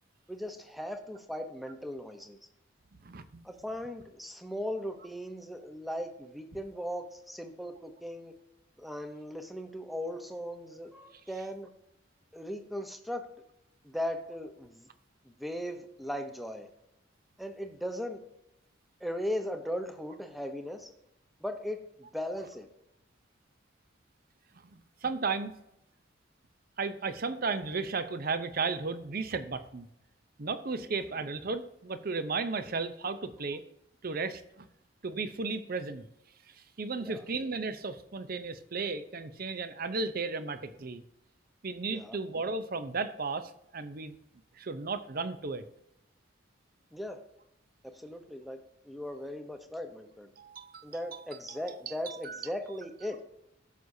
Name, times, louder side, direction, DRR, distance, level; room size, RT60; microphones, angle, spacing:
voice 1, 0.3-2.4 3.4-8.3 8.8-11.7 12.3-13.3 13.8-14.9 15.2-16.7 17.4-18.2 19.0-20.9 21.4-22.7 30.8-30.9 37.0-37.2 41.9-42.2 46.9-47.2 47.8-48.6 48.8-50.3 50.8-53.2, equal, ahead, 6 dB, 0.8 m, -38 dB
voice 2, 3.0-3.4 24.6-24.8 25.0-25.5 26.8-29.9 30.4-33.6 34.0-34.7 35.0-36.0 36.8-41.0 41.6-44.1 44.6-45.6 50.4-51.2 51.5-51.6 51.9-52.4, right 4 dB, 45° right, 11 dB, 0.6 m, -34 dB
14.0 x 6.4 x 2.7 m, 0.82 s
head